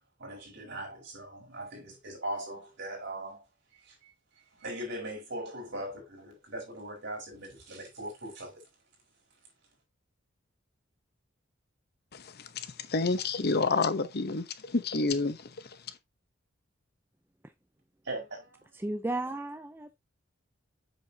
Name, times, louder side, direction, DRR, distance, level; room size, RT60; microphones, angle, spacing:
voice 1, 0.2-3.4 3.7-4.1 4.5-8.6 18.0-18.8, right 1 dB, 60° right, 4.7 m, -40 dB
voice 2, 12.5-15.4, left 3 dB, 55° left, 0.9 m, -29 dB
voice 3, 18.7-20.0, right 2 dB, 10° right, 0.5 m, -34 dB
8.2 x 6.2 x 2.8 m
head